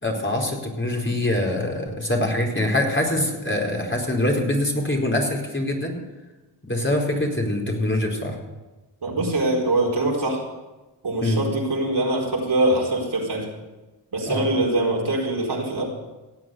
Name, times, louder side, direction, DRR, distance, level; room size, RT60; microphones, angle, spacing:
voice 1, 0.0-5.9 6.6-8.4 11.2-11.4 14.3-14.4, left 1 dB, 25° left, 0 dB, 4.5 m, -24 dB
voice 2, 9.0-10.4 11.0-13.5 14.1-15.8, right 2 dB, 55° right, -1 dB, 4.5 m, -23 dB
18.0 x 8.0 x 7.9 m, 1.1 s
cardioid pair, 50°, 47 cm